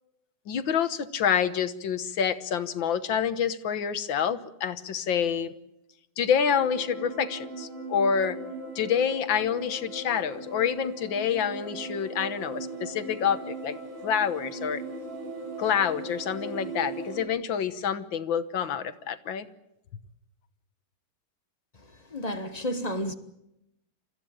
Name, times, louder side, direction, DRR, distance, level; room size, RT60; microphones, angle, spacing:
voice 1, 0.5-5.5 6.2-8.4 8.8-13.8 14.0-14.8 15.6-19.5, left 7 dB, 70° left, 1.9 m, -27 dB
sound 1, 6.4-17.2, right 2 dB, 85° right, 7.1 m, -38 dB
voice 2, 22.1-23.1, equal, 25° left, 1.0 m, -31 dB
29.0 x 15.0 x 8.8 m
omnidirectional pair, 2.3 m